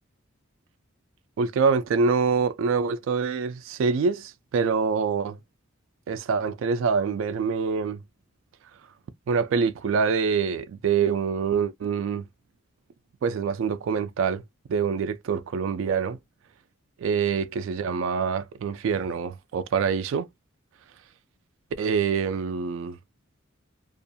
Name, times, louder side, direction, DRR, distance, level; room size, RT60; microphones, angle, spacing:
voice 1, 1.4-5.4 6.1-8.0 9.3-12.2 13.2-14.4 14.7-16.2 17.0-20.3 21.8-23.0, right 5 dB, 65° right, 0.3 m, -25 dB
2.4 x 2.2 x 2.6 m
head